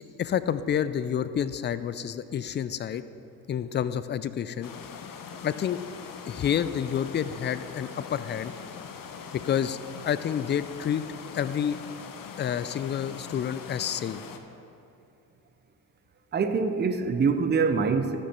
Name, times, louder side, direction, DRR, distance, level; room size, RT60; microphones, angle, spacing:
voice 1, 0.2-3.0 3.5-4.7 5.4-5.8 6.3-8.5 9.4-9.8 10.0-11.0 11.3-11.8 12.4-14.2, left 9 dB, 25° left, 0.3 m, -29 dB
sound 1, 4.6-14.4, left 6 dB, 45° left, 0.9 m, -42 dB
voice 2, 16.3-18.2, right 5 dB, 20° right, 0.7 m, -24 dB
14.0 x 6.1 x 4.4 m
hypercardioid pair, 60°, 48 cm